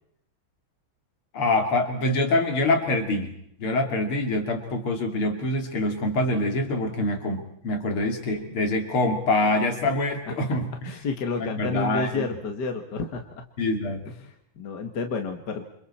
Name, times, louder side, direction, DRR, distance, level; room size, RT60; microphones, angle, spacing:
voice 1, 1.3-3.3 3.6-10.9 11.6-12.3 13.6-14.0, left 2 dB, 80° left, 5 dB, 3.5 m, -25 dB
voice 2, 10.8-13.4 14.1-15.6, left 4 dB, 55° left, 5 dB, 2.2 m, -31 dB
28.5 x 27.0 x 4.4 m, 0.71 s
omnidirectional pair, 2.3 m